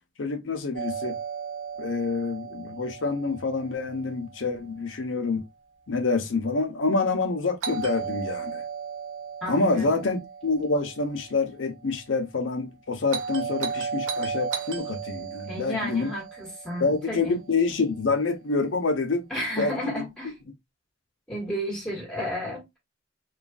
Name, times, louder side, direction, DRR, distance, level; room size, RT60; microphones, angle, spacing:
voice 1, 0.2-1.2 1.8-5.4 5.9-8.6 9.5-16.1 16.8-19.3 19.6-20.0, left 3 dB, 85° left, 0.6 m, -27 dB
Doorbell, 0.8-4.7 7.6-11.8 13.1-17.5, right 6 dB, 80° right, 0.6 m, -35 dB
voice 2, 9.4-10.0 15.5-17.4 19.3-20.3 21.3-22.8, equal, 5° left, 1.2 m, -32 dB
3.1 x 2.3 x 2.4 m
head